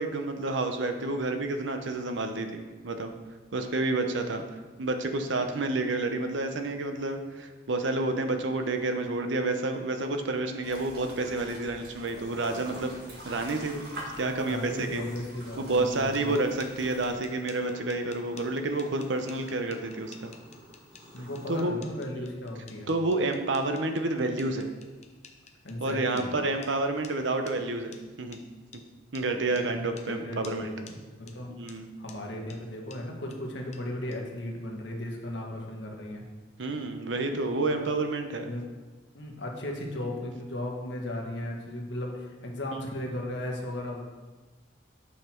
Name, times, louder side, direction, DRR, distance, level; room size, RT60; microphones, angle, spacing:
voice 1, 0.0-3.1 3.5-4.4 4.8-12.9 13.2-13.8 14.2-15.0 15.6-20.3 21.5-21.7 22.2-22.3 22.9-24.7 25.8-28.4 29.1-30.7 31.5-31.9 36.6-38.5, right 2 dB, 80° right, 6 dB, 0.8 m, -29 dB
sound 1, 10.6-17.1, right 1 dB, 55° right, 1.6 m, -45 dB
sound 2, 12.0-21.6, equal, 20° right, 1.9 m, -52 dB
voice 2, 14.2-16.3 21.1-22.9 25.6-26.3 29.5-31.0 31.3-31.5 32.0-36.2 37.8-37.9 38.4-38.6 39.1-44.0, left 1 dB, 70° left, 0 dB, 1.5 m, -36 dB
sound 3, 15.9-26.3 26.6-26.7 27.0-27.1 27.5-27.6 27.9-28.0 28.3-28.4 28.7-28.8 29.2-29.3 29.6-29.7 30.0-30.1 30.4-30.6 30.9-31.0 31.3-31.4 31.7-31.8 32.1-32.2 32.5-32.6 32.9-33.0 33.3-33.4 33.7-33.8 34.1-34.2, left 7 dB, 35° left, 0.7 m, -50 dB
8.3 x 5.8 x 4.5 m, 1.3 s
head